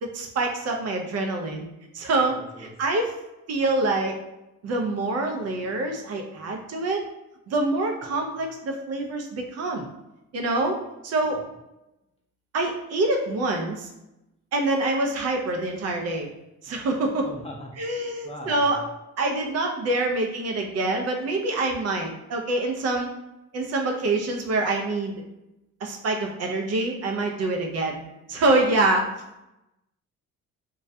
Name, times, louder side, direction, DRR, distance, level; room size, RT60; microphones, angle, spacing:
voice 1, 0.0-1.7 1.9-3.1 3.5-4.2 4.6-7.0 7.5-9.9 10.3-10.8 11.0-11.4 12.5-13.9 14.5-16.3 16.6-17.3 17.8-18.8 19.2-23.1 23.5-25.2 25.8-28.0 28.3-29.1, right 2 dB, 55° right, 2 dB, 0.5 m, -25 dB
voice 2, 2.2-2.7 11.2-11.4 17.2-18.9, left 1 dB, 20° left, -1 dB, 0.5 m, -41 dB
2.2 x 2.1 x 2.6 m, 0.91 s
cardioid pair, 90°, 30 cm